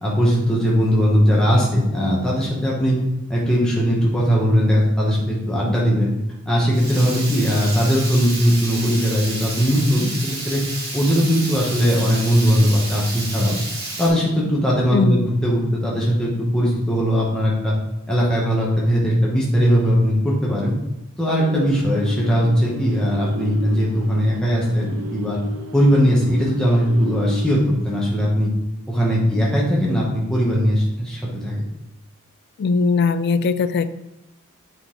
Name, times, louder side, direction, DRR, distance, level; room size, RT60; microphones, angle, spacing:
voice 1, 0.0-3.0 3.3-6.1 6.5-10.6 10.9-13.6 14.0-17.7 18.1-20.7 21.2-25.4 25.7-28.5 28.9-31.6, equal, 5° left, -5 dB, 1.1 m, -19 dB
Water tap faucet / Liquid, 6.7-14.1, right 2 dB, 50° right, 2.2 m, -31 dB
voice 2, 14.9-15.3 32.6-33.9, left 4 dB, 50° left, 13 dB, 0.3 m, -19 dB
sound 1, 21.4-27.5, left 1 dB, 70° right, 0.6 m, -33 dB
9.0 x 4.0 x 3.8 m, 0.92 s
head